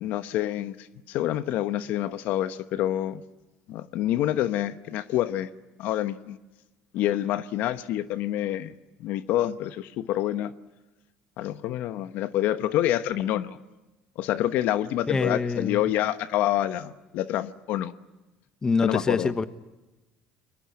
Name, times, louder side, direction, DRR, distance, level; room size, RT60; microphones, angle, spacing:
voice 1, 0.0-3.2 3.7-5.5 5.8-6.4 6.9-8.7 9.0-10.5 11.4-13.6 14.2-17.9 18.8-19.3, left 13 dB, 70° left, 1.1 m, -27 dB
voice 2, 15.1-15.8 18.6-19.4, left 4 dB, 20° left, 1.2 m, -25 dB
24.5 x 22.0 x 9.6 m
supercardioid pair, 110°, 3 cm